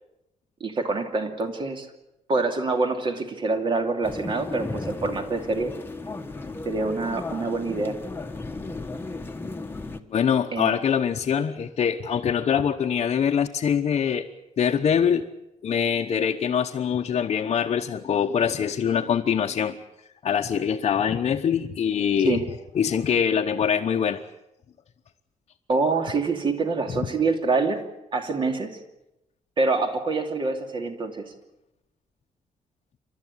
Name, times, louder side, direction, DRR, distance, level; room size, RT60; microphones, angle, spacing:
voice 1, 0.6-1.9 2.3-5.7 6.7-8.0 10.5-10.8 22.2-22.4 25.7-27.8 28.1-28.8 29.6-31.2, right 3 dB, 40° right, 5 dB, 2.8 m, -26 dB
sound 1, 4.0-10.0, left 3 dB, 15° left, 1.3 m, -35 dB
voice 2, 10.1-14.3 14.6-15.3 15.6-19.8 20.2-22.4 22.7-24.2, left 8 dB, 50° left, 1 dB, 1.0 m, -23 dB
28.5 x 13.0 x 9.8 m, 0.90 s
wide cardioid pair, 160°, 13 cm